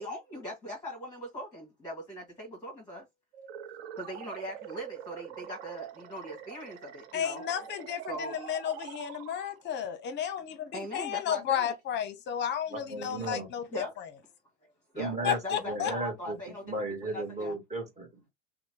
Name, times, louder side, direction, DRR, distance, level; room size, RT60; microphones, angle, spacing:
voice 1, 0.0-3.1 3.9-7.4 8.1-8.4 10.7-11.7 13.7-13.9 14.9-17.6, equal, 10° left, 1.1 m, -40 dB
sound 1, 3.3-9.8, right 9 dB, 60° right, 0.7 m, -44 dB
voice 2, 7.1-14.1 15.2-15.9, left 9 dB, 30° left, 0.7 m, -33 dB
voice 3, 12.7-13.5 14.9-16.4 16.6-18.3, right 2 dB, 20° right, 1.2 m, -35 dB
2.9 x 2.1 x 3.0 m
hypercardioid pair, 110°, 36 cm